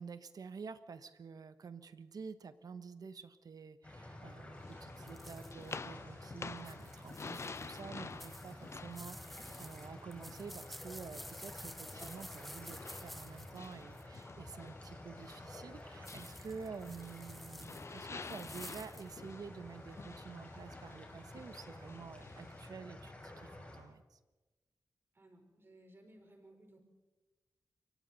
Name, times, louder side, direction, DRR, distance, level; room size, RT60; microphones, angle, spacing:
voice 1, 0.0-24.2, right 5 dB, 65° right, 11 dB, 1.1 m, -49 dB
sound 1, 3.8-23.8, left 1 dB, 20° left, 6.3 m, -51 dB
sound 2, 4.6-10.7 11.1-17.3 17.6-22.7, left 4 dB, 40° left, 0.7 m, -50 dB
sound 3, 5.1-5.8 6.6-7.8 8.2-14.2 16.0-19.1, equal, ahead, 0.8 m, -52 dB
voice 2, 25.1-26.8, right 1 dB, 35° right, 3 dB, 4.6 m, -60 dB
28.5 x 24.0 x 4.1 m, 1.2 s
wide cardioid pair, 110°, 7 cm